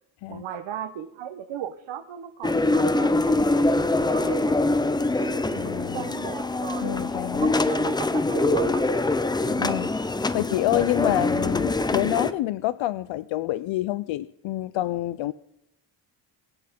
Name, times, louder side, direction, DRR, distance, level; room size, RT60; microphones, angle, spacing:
voice 1, 0.3-4.6 5.2-7.1 7.4-9.1 9.4-9.8 11.2-11.4, right 10 dB, 75° right, 7 dB, 1.1 m, -36 dB
sound 1, 2.4-12.3, left 2 dB, 10° left, 0.5 m, -24 dB
voice 2, 5.6-6.1 6.8-7.5 9.6-9.9 10.2-15.3, left 15 dB, 75° left, 16 dB, 0.5 m, -27 dB
22.5 x 7.8 x 5.2 m, 0.84 s
cardioid pair, 135°, 46 cm